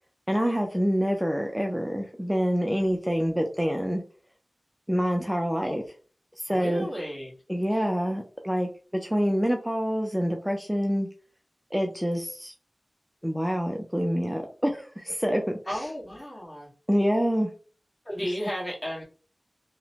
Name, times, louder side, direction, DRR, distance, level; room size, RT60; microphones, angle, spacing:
voice 1, 0.3-4.0 4.9-5.8 6.4-6.9 7.5-11.1 11.7-12.5 13.2-15.4 16.9-17.5, equal, 5° right, 2 dB, 0.4 m, -26 dB
voice 2, 6.5-7.4 7.7-7.8 15.7-16.7 18.0-19.0, equal, 40° left, -4 dB, 1.4 m, -34 dB
2.9 x 2.1 x 2.7 m, 0.38 s
wide cardioid pair, 70°, 0 cm